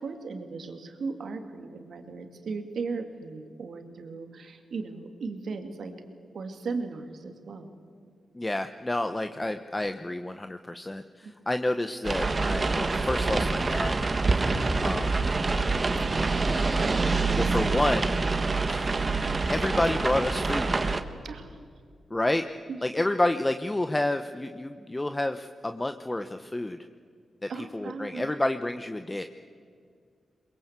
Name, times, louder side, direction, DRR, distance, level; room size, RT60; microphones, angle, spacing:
voice 1, 0.0-5.9 6.3-7.8 11.2-11.3 21.2-21.6 22.7-22.8 27.5-28.3, right 4 dB, 75° right, 6 dB, 2.5 m, -37 dB
voice 2, 8.3-14.0 14.8-15.2 16.4-17.1 17.4-18.1 18.7-18.9 19.5-20.8 22.1-22.5 22.8-26.8 27.4-29.2, left 1 dB, 20° left, 8 dB, 1.0 m, -29 dB
sound 1, 12.0-21.0, right 3 dB, 40° right, 1.6 m, -26 dB
22.5 x 22.0 x 8.2 m, 2.2 s
cardioid pair, 60°, 0 cm